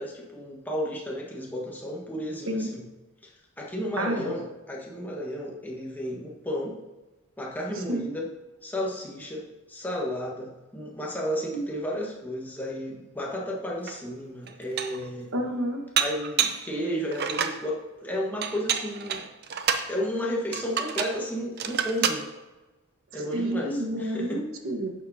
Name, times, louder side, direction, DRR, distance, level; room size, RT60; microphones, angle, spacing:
voice 1, 0.0-2.8 3.2-6.8 7.4-8.3 8.6-15.3 16.0-19.2 19.9-22.3 23.1-24.4, equal, 10° left, -4 dB, 1.4 m, -33 dB
voice 2, 4.0-4.3 7.7-8.1 11.5-11.6 15.3-15.8 23.1-24.9, right 1 dB, 65° right, 4 dB, 1.2 m, -30 dB
Dishes pots and pans, 13.9-14.0 14.5-15.1 16.0-16.7 17.1-17.6 18.4-19.9 20.5-21.2 21.6-22.2, right 7 dB, 50° right, 0.6 m, -28 dB
11.0 x 7.1 x 2.8 m, 1.2 s
head